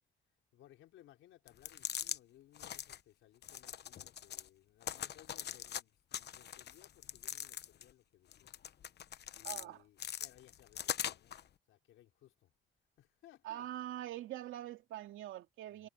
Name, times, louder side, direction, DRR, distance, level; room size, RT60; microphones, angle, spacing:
voice 1, 0.5-8.5 9.3-11.4 11.7-12.5 13.0-13.7 15.7-15.9, left 13 dB, 85° left, 4.4 m, -63 dB
sound 1, 1.5-2.2 2.5-3.0 3.4-4.5 4.8-5.8 6.1-7.9 8.3-9.6 10.0-11.4, left 10 dB, 55° left, 1.0 m, -42 dB
voice 2, 9.4-9.8 13.4-15.9, right 13 dB, 85° right, 2.5 m, -44 dB
cardioid pair, 90°, 20 cm